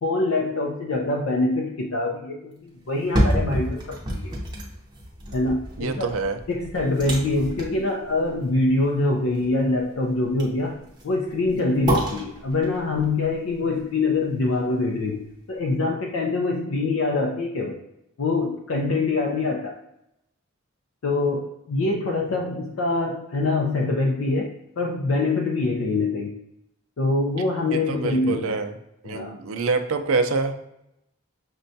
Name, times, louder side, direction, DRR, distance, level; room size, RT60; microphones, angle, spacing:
voice 1, 0.0-4.3 5.3-6.1 6.5-17.8 18.2-19.8 21.0-26.4 27.0-28.6 29.0-29.3, left 2 dB, 65° left, 0 dB, 0.4 m, -24 dB
sound 1, 2.9-14.9 15.3-15.4, right 1 dB, 20° right, 0.6 m, -30 dB
voice 2, 5.8-6.4 7.4-7.5 21.8-21.9 27.7-28.7 29.0-30.5, right 4 dB, 70° right, 7 dB, 0.4 m, -26 dB
6.1 x 2.2 x 2.6 m, 0.84 s
head